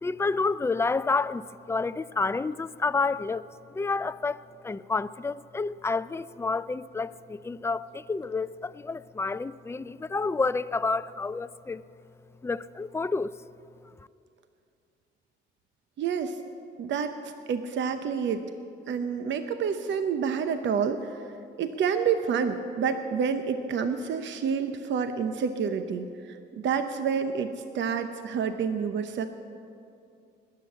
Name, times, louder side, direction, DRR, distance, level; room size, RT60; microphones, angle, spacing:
voice 1, 0.0-3.5 3.7-11.8 12.4-13.3, left 4 dB, 15° left, 0.4 m, -29 dB
voice 2, 16.0-16.4 16.8-18.4 18.9-21.3 21.6-29.3, right 6 dB, 65° right, 0.8 m, -28 dB
20.5 x 7.7 x 8.5 m
cardioid pair, 90°, 20 cm